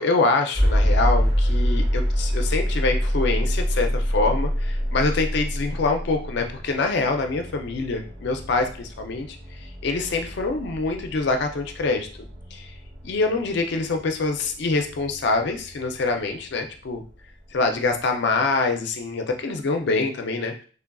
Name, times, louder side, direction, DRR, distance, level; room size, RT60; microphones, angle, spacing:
voice 1, 0.0-9.4 9.8-12.1 12.5-12.7 13.0-17.0 17.5-20.5, left 3 dB, 55° left, 5 dB, 0.4 m, -25 dB
sound 1, 0.5-16.5, equal, 40° right, 1.1 m, -26 dB
3.2 x 2.4 x 2.2 m, 0.39 s
head